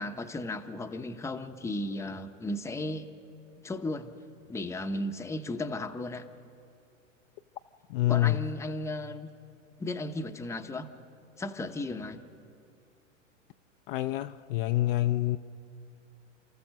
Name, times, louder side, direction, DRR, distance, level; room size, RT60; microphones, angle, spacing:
voice 1, 0.0-3.1 3.6-4.2 4.5-6.3 8.1-9.3 9.8-10.9 11.4-12.2, left 1 dB, 5° left, 8 dB, 0.8 m, -35 dB
voice 2, 7.9-8.5 13.9-15.4, left 15 dB, 45° left, 9 dB, 0.6 m, -27 dB
29.0 x 14.0 x 6.5 m, 2.4 s
hypercardioid pair, 110°, 38 cm